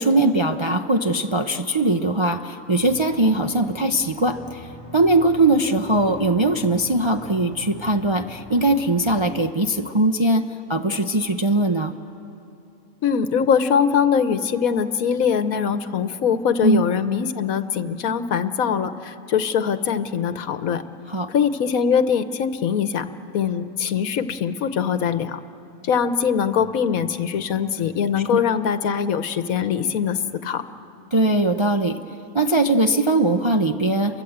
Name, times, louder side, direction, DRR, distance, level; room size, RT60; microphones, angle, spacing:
voice 1, 0.0-11.9 16.6-16.8 21.1-21.3 28.3-28.4 31.1-32.0 32.3-34.2, right 2 dB, 35° right, 5 dB, 0.5 m, -20 dB
Aircraft, 2.8-9.3, left 1 dB, 35° left, 1.3 m, -43 dB
voice 2, 13.0-20.8 21.3-23.1 23.3-25.4 25.8-30.6, left 7 dB, 80° left, 11 dB, 1.4 m, -22 dB
30.0 x 23.0 x 8.0 m, 2.7 s
omnidirectional pair, 1.5 m